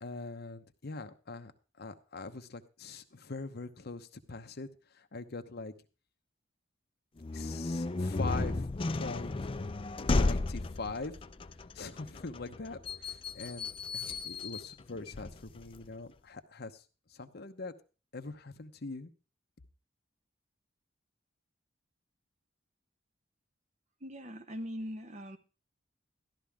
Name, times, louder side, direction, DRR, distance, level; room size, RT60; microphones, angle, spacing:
voice 1, 0.0-1.5 1.8-4.7 4.9-5.7 7.3-8.7 8.9-9.5 10.0-11.2 11.7-16.8 17.1-17.7 18.1-19.1, left 3 dB, 55° left, 7 dB, 0.9 m, -42 dB
sound 1, 7.2-15.9, left 3 dB, 30° left, 0.5 m, -34 dB
voice 2, 24.0-25.4, equal, 40° right, 8 dB, 1.1 m, -41 dB
13.5 x 11.5 x 3.6 m, 0.35 s
head